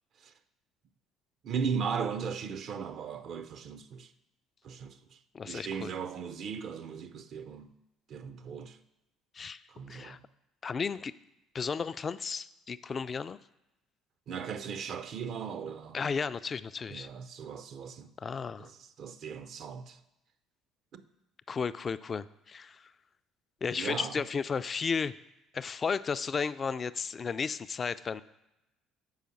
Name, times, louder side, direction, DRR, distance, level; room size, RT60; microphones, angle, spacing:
voice 1, 1.4-4.1 4.6-5.2 5.4-7.8 8.1-8.8 9.7-10.2 14.3-16.0 16.9-18.1 18.6-20.0 20.9-21.0 23.7-24.2, right 6 dB, 55° right, 0.5 m, -37 dB
voice 2, 5.3-5.9 9.3-9.6 9.9-10.2 10.6-11.1 11.5-13.4 15.9-17.1 18.2-18.7 21.5-22.9 23.6-25.1 25.5-28.2, left 5 dB, 35° left, 0.3 m, -34 dB
5.6 x 5.1 x 6.3 m
hypercardioid pair, 55°, 0 cm